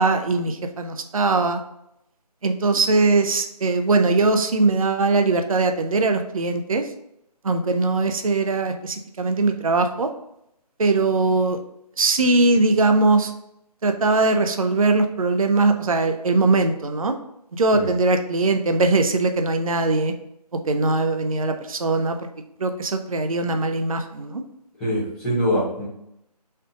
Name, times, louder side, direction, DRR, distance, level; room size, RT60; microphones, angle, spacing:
voice 1, 0.0-1.6 2.4-6.9 7.4-10.1 10.8-11.6 12.0-13.3 13.8-17.2 17.5-20.1 20.7-22.2 22.6-24.4, right 3 dB, 55° right, 6 dB, 0.5 m, -21 dB
voice 2, 24.8-25.9, equal, ahead, -11 dB, 0.6 m, -23 dB
4.3 x 2.5 x 4.9 m, 0.79 s
figure-of-eight pair, 155°, 21 cm